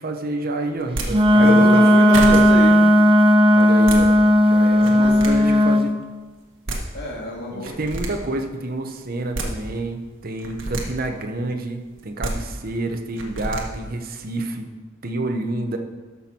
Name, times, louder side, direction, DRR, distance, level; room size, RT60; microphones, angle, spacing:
voice 1, 0.0-1.8 2.3-2.4 3.5-4.1 4.5-5.9 7.5-14.7 15.0-15.8, right 2 dB, 45° right, 5 dB, 0.9 m, -28 dB
sound 1, 0.8-1.1 1.8-1.9 2.1-2.4 3.6-4.0 4.7-5.3 6.4-6.5 6.7-6.8 7.6-8.1 9.1-9.5 10.4-10.8 12.0-12.3 13.2-13.6, right 2 dB, 65° right, 1.6 m, -28 dB
voice 2, 1.1-2.8 4.9-5.7 6.9-7.7, left 1 dB, 55° left, -2 dB, 2.2 m, -27 dB
Wind instrument woodwind instrument, 1.1-5.9, equal, 25° right, 0.5 m, -14 dB
12.5 x 6.1 x 4.4 m, 1.3 s
head